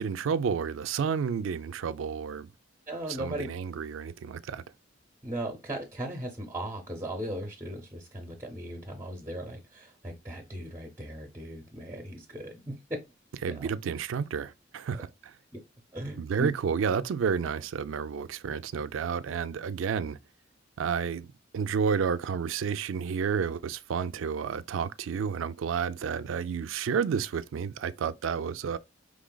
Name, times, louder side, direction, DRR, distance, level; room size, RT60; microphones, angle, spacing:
voice 1, 0.0-2.5 3.1-4.6 13.4-15.3 16.2-20.2 20.8-21.3 21.5-28.8, right 6 dB, 90° right, 0.4 m, -31 dB
voice 2, 2.9-3.5 5.2-12.7 13.5-13.6 15.5-15.6 15.9-16.5, right 1 dB, 15° right, 0.7 m, -37 dB
5.0 x 3.2 x 2.2 m
head